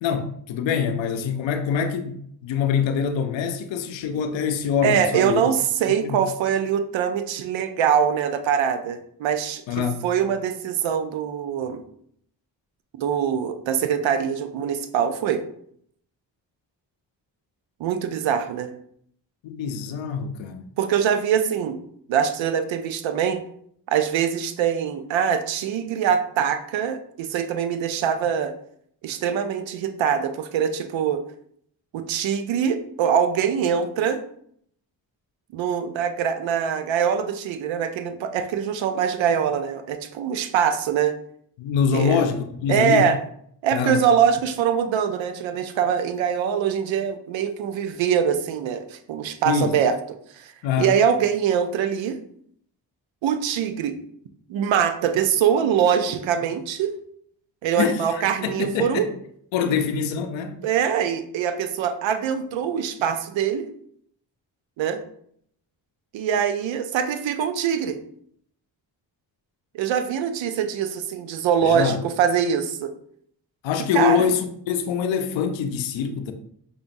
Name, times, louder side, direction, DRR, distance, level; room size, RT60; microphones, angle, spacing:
voice 1, 0.0-5.4 5.9-6.2 9.7-10.1 19.4-20.7 41.6-43.1 43.7-44.1 49.5-49.8 50.6-51.0 57.8-59.1 59.5-60.6 71.6-72.0 73.6-76.3, left 7 dB, 80° left, 0.6 m, -25 dB
voice 2, 4.8-11.8 13.0-15.4 17.8-18.7 20.8-21.8 22.1-23.4 23.9-28.5 29.0-31.2 31.9-34.2 35.5-41.1 41.9-42.2 42.7-43.2 43.6-49.9 50.3-50.5 50.8-52.2 53.2-54.0 54.5-56.9 57.6-59.1 59.7-59.8 60.6-63.7 64.8-65.0 66.1-68.0 69.7-72.9 73.9-74.3, right 8 dB, 80° right, 0.5 m, -23 dB
5.1 x 2.4 x 2.5 m
supercardioid pair, 45°, 45 cm